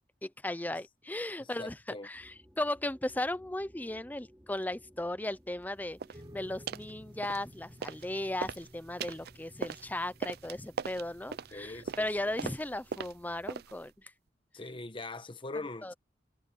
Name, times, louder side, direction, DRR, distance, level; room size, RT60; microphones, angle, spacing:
voice 1, 0.2-1.7 2.0-6.0 6.3-13.9 15.8-15.9, left 1 dB, 10° left, 0.7 m, -36 dB
voice 2, 1.4-2.1 11.5-12.3 14.5-15.9, left 2 dB, 30° left, 1.1 m, -42 dB
Horror ambient, 2.1-13.5, equal, 10° right, 5.2 m, -61 dB
sound 1, 6.0-6.2 6.7-6.9 7.2-8.1 8.3-13.9, right 6 dB, 60° right, 0.4 m, -40 dB
sound 2, 6.1-12.7, equal, 25° right, 4.4 m, -56 dB
head